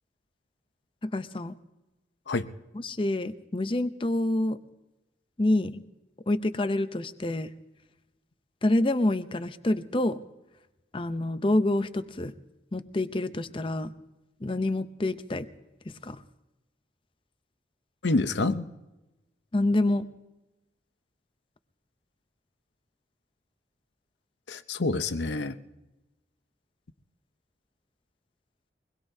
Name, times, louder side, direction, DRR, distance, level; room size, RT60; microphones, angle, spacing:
voice 1, 1.0-1.5 2.7-4.6 5.4-5.8 6.3-7.5 8.6-10.2 10.9-12.3 12.7-13.9 14.4-15.5 15.9-16.2 19.5-20.1, left 1 dB, 30° left, 11 dB, 0.6 m, -27 dB
voice 2, 18.0-18.7 24.5-25.6, left 3 dB, 85° left, 11 dB, 0.8 m, -27 dB
23.5 x 20.5 x 2.7 m, 1.0 s
head